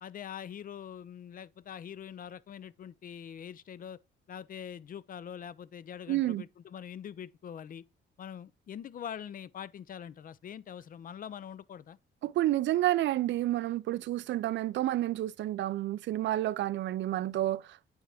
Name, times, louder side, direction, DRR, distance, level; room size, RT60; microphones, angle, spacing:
voice 1, 0.0-4.0 4.3-7.8 8.2-12.0, left 8 dB, 45° left, 0.4 m, -43 dB
voice 2, 6.1-6.4 12.2-17.8, right 14 dB, 70° right, 0.4 m, -30 dB
8.8 x 3.4 x 3.4 m
cardioid pair, 90°, 20 cm